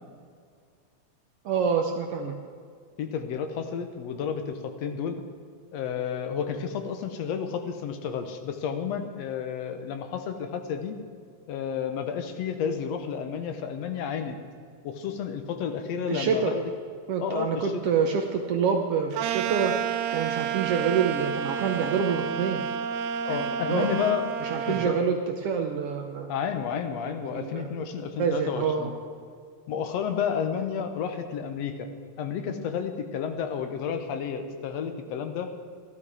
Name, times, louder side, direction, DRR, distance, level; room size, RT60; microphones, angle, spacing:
voice 1, 1.4-2.3 16.1-16.5 17.1-19.7 20.1-22.6 23.3-23.9 24.4-26.3 27.3-27.7 28.2-28.9, right 6 dB, 70° right, 4 dB, 1.5 m, -27 dB
voice 2, 3.0-5.2 5.7-11.0 11.5-14.4 14.8-16.6 17.2-17.7 23.3-24.3 24.7-25.0 26.3-28.9 29.7-31.9 32.2-35.6, left 7 dB, 70° left, 7 dB, 2.0 m, -31 dB
sound 1, 19.1-25.0, right 8 dB, 90° right, 2.1 m, -30 dB
14.5 x 12.5 x 4.8 m, 2.1 s
omnidirectional pair, 3.4 m